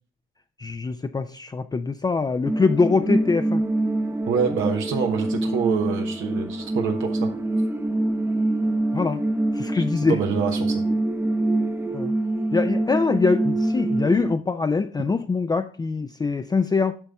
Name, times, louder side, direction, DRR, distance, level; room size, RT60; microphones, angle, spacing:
voice 1, 0.6-3.6 8.9-9.2 9.5-10.2 11.9-12.1 12.5-17.0, left 4 dB, 20° left, 0.4 m, -23 dB
sound 1, 2.5-14.3, right 1 dB, 10° right, 0.7 m, -25 dB
voice 2, 4.3-7.3 10.1-10.8, right 6 dB, 85° right, 1.0 m, -26 dB
8.9 x 5.4 x 3.5 m
cardioid pair, 90°, 20 cm